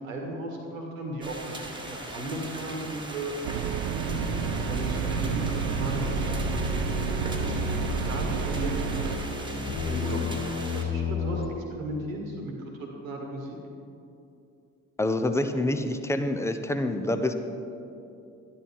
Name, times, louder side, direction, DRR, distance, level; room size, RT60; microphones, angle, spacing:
voice 1, 0.0-3.6 3.9-4.0 4.7-6.7 7.3-7.5 8.1-8.7 9.0-9.5 9.8-13.6, right 1 dB, 85° right, 1 dB, 1.7 m, -36 dB
sound 1, 1.2-10.8, right 1 dB, 10° right, 1.9 m, -40 dB
sound 2, 3.4-9.2, right 11 dB, 70° right, 0.6 m, -31 dB
sound 3, 4.1-11.5, left 4 dB, 50° left, 2.1 m, -32 dB
voice 2, 15.0-17.3, left 1 dB, 5° left, 7 dB, 0.9 m, -27 dB
12.5 x 10.5 x 4.5 m, 2.7 s
figure-of-eight pair, 50°, 39 cm